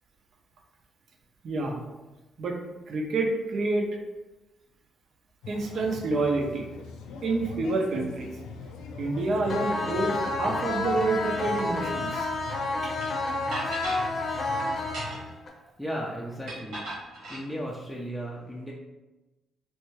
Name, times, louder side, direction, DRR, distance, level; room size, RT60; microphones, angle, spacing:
voice 1, 1.4-1.9 2.4-2.6 2.9-3.9 5.5-6.7 7.2-8.3 9.0-12.3 12.8-12.9, right 3 dB, 60° right, 1 dB, 0.6 m, -28 dB
sound 1, 5.4-15.3, left 4 dB, 90° left, 0.4 m, -42 dB
sound 2, 9.5-15.5, left 2 dB, 50° left, 0.7 m, -30 dB
sound 3, 13.0-13.1 13.5-14.0 14.8-15.4 16.5-17.4, right 1 dB, 85° right, 1.3 m, -36 dB
voice 2, 15.8-16.9 17.3-18.7, equal, ahead, -4 dB, 0.5 m, -35 dB
3.3 x 2.6 x 3.1 m, 1.1 s
cardioid pair, 90°, 0 cm